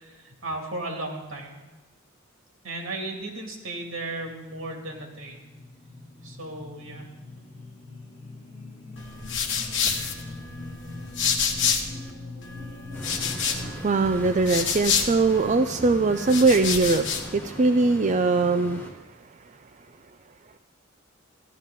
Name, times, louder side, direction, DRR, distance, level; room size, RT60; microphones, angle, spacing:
voice 1, 0.0-1.6 2.6-5.4 6.2-7.1, right 2 dB, 80° right, 1 dB, 2.5 m, -35 dB
sound 1, 3.9-13.7, left 2 dB, 45° left, 3.9 m, -42 dB
sound 2, 9.0-12.1 12.4-15.6 16.1-17.3, left 6 dB, 65° left, 1.4 m, -29 dB
sound 3, 12.9-18.9, equal, 10° left, 1.9 m, -39 dB
voice 2, 13.6-17.0 17.3-18.8, right 3 dB, 35° right, 7 dB, 0.4 m, -21 dB
14.5 x 11.5 x 3.7 m, 1.2 s
head